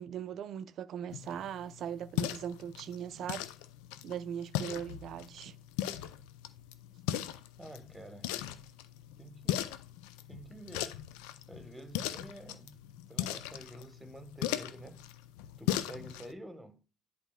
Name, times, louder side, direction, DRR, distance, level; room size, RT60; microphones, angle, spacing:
voice 1, 0.0-3.4 4.0-5.5, right 9 dB, 55° right, 0.4 m, -39 dB
sound 1, 1.1-16.3, left 12 dB, 65° left, 0.4 m, -39 dB
voice 2, 7.6-8.3 9.2-9.8 10.3-11.0 11.5-12.8 13.1-15.0 15.6-16.8, right 1 dB, 10° right, 1.2 m, -49 dB
10.5 x 4.1 x 2.3 m
figure-of-eight pair, 50°, 0 cm